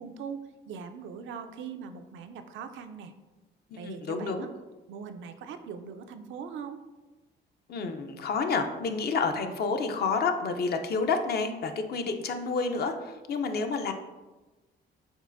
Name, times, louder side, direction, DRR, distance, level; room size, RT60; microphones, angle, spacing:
voice 1, 0.0-3.1 3.8-4.5 4.9-6.8, right 6 dB, 75° right, 8 dB, 0.4 m, -41 dB
voice 2, 3.7-4.5 7.7-13.9, left 4 dB, 55° left, 6 dB, 0.5 m, -29 dB
5.3 x 3.3 x 2.5 m, 1.2 s
cardioid pair, 90°, 20 cm